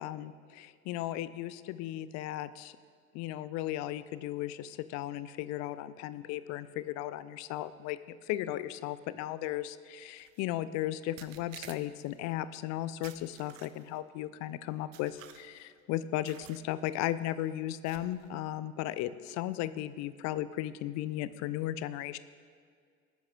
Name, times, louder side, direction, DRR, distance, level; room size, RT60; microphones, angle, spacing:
voice 1, 0.0-2.7 3.1-22.2, left 13 dB, 40° left, 15 dB, 0.4 m, -36 dB
sound 1, 10.2-10.4 11.2-12.2 13.0-14.0 14.9-15.7 16.3-16.7 17.0-17.2 17.9-18.3, right 12 dB, 65° right, 0.7 m, -52 dB
18.0 x 9.7 x 2.6 m, 2.1 s
figure-of-eight pair, 60°, 42 cm